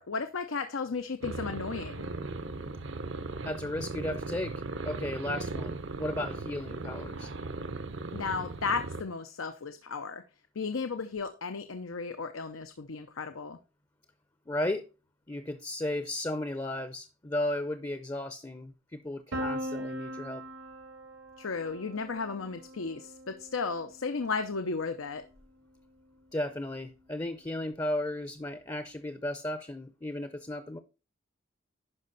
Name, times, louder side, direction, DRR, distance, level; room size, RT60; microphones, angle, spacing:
voice 1, 0.0-2.1 8.1-10.2 10.6-13.6 21.4-25.2, left 4 dB, 90° left, 0.7 m, -34 dB
sound 1, 1.2-9.0, right 3 dB, 65° right, 0.8 m, -38 dB
voice 2, 3.4-7.3 14.5-14.8 15.3-20.4 26.3-30.8, left 1 dB, 20° left, 0.6 m, -35 dB
Piano, 19.3-25.1, equal, 90° right, 2.3 m, -41 dB
11.0 x 5.2 x 4.0 m
head